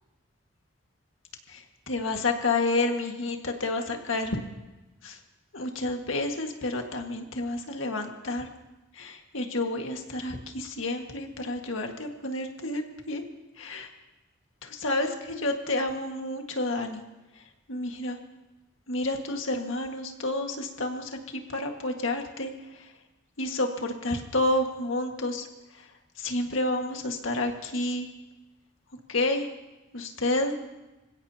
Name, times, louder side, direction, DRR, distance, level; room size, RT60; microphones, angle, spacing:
voice 1, 1.5-4.4 5.0-5.2 5.5-8.5 8.9-13.2 13.6-13.9 14.6-17.0 17.7-18.2 18.9-22.9 23.4-25.5 25.7-25.9 26.2-28.1 29.1-29.5 29.9-30.6, left 2 dB, 85° left, 3 dB, 1.8 m, -30 dB
26.0 x 16.0 x 2.9 m, 1.1 s
head